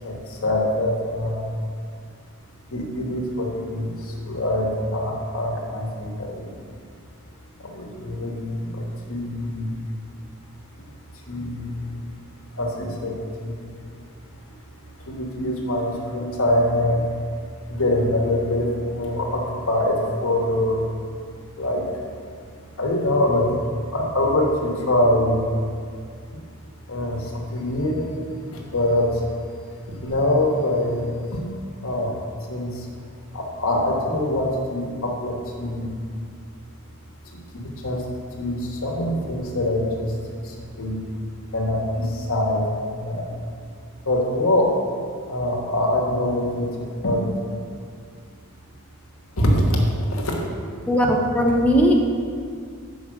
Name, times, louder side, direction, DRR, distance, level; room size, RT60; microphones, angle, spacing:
voice 1, 0.0-1.5 2.7-6.6 7.6-9.7 11.1-12.0 12.5-13.2 13.4-14.0 15.0-17.0 17.7-20.8 21.5-21.9 22.8-25.4 26.9-28.1 28.4-29.2 29.9-31.4 31.8-32.1 32.5-32.9 33.3-35.9 37.5-40.2 40.4-41.0 41.5-43.3 44.0-44.7 45.3-47.3 49.4-50.4, left 1 dB, 65° left, 0 dB, 1.2 m, -24 dB
voice 2, 50.9-51.9, equal, 5° left, -1 dB, 0.6 m, -18 dB
6.2 x 4.9 x 6.3 m, 2.1 s
head